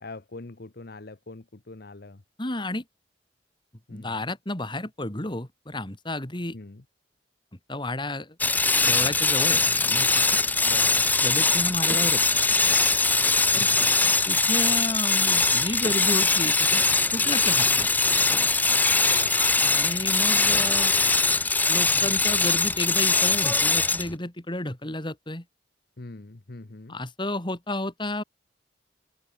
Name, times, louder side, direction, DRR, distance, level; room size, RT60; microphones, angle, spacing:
voice 1, 0.0-2.2 3.9-4.3 6.5-6.8 10.6-11.1 13.5-13.9 19.0-19.5 26.0-27.0, left 2 dB, 60° left, 1.0 m, -42 dB
voice 2, 2.4-2.8 3.9-6.6 7.7-8.4 8.8-10.4 11.2-12.6 13.5-13.7 14.3-16.8 17.1-17.9 19.4-20.9 21.7-25.4 26.9-28.2, left 1 dB, 25° left, 2.8 m, -32 dB
sound 1, 8.4-24.1, left 3 dB, 10° left, 0.6 m, -22 dB
sound 2, 9.3-21.3, right 4 dB, 85° right, 7.0 m, -54 dB
head